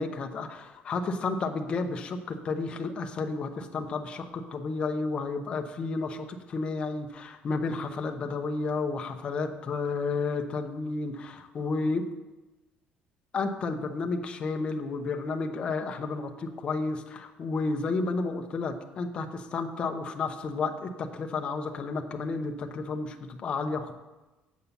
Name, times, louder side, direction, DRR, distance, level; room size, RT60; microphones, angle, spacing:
voice 1, 0.0-12.0 13.3-23.9, left 3 dB, 30° left, 5 dB, 0.7 m, -31 dB
8.2 x 5.6 x 6.9 m, 1.1 s
cardioid pair, 175°, 3 cm